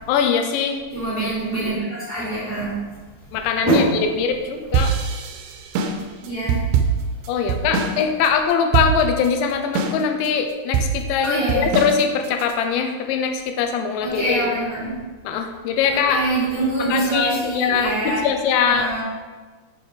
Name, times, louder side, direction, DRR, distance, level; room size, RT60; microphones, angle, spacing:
voice 1, 0.1-0.8 3.3-3.9 4.1-4.9 7.3-14.5 15.2-16.2 16.9-18.9, left 6 dB, 85° left, 5 dB, 2.9 m, -22 dB
voice 2, 0.9-2.8 3.7-3.9 6.2-6.7 11.2-11.7 14.0-15.0 16.1-18.2 18.6-19.0, right 2 dB, 30° right, -11 dB, 1.7 m, -24 dB
sound 1, 4.7-8.0 8.3-8.4 8.7-9.3 9.8-10.3 10.7-12.5, right 6 dB, 80° right, 2.6 m, -22 dB
7.1 x 6.9 x 3.4 m, 1.3 s
omnidirectional pair, 5.3 m